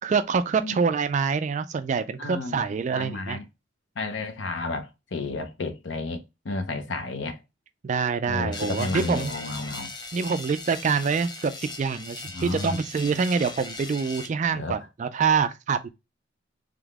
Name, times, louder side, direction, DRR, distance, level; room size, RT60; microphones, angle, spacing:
voice 1, 0.0-3.4 7.8-9.3 10.1-15.9, right 5 dB, 40° right, 0.3 m, -26 dB
voice 2, 2.2-3.4 4.0-7.4 8.3-9.9 12.3-12.8 14.5-14.8, left 3 dB, 70° left, 0.7 m, -32 dB
sound 1, 8.5-14.3, left 2 dB, 25° left, 0.6 m, -39 dB
3.7 x 3.4 x 3.5 m
head